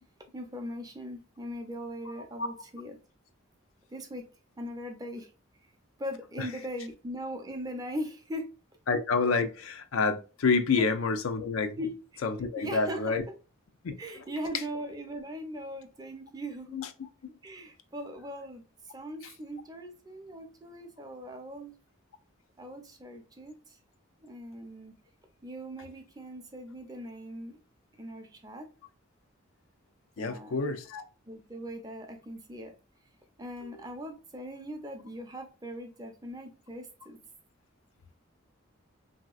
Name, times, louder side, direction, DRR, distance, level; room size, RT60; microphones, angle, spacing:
voice 1, 0.3-3.0 3.9-4.3 4.6-5.3 6.0-8.5 10.7-10.9 11.8-11.9 12.6-13.2 14.0-16.8 17.4-18.6 18.9-21.7 22.6-23.8 24.2-25.0 25.4-27.6 28.0-28.7 30.2-30.7 31.3-32.7 33.4-37.2, equal, 20° right, 0.5 m, -40 dB
voice 2, 8.9-11.7 12.2-13.2 13.8-14.0 16.7-16.9 30.2-31.0, left 4 dB, 85° left, 0.5 m, -28 dB
3.1 x 2.8 x 2.3 m
head